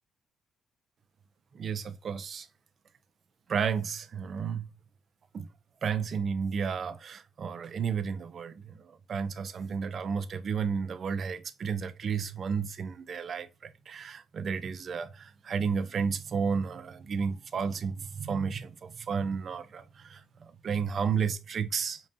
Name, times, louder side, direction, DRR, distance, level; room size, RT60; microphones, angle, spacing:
voice 1, 1.5-2.5 3.5-4.7 5.3-5.5 5.8-8.6 9.1-20.2 20.6-22.0, right 6 dB, 50° right, 0.5 m, -32 dB
5.3 x 2.7 x 2.6 m
cardioid pair, 90°, 0 cm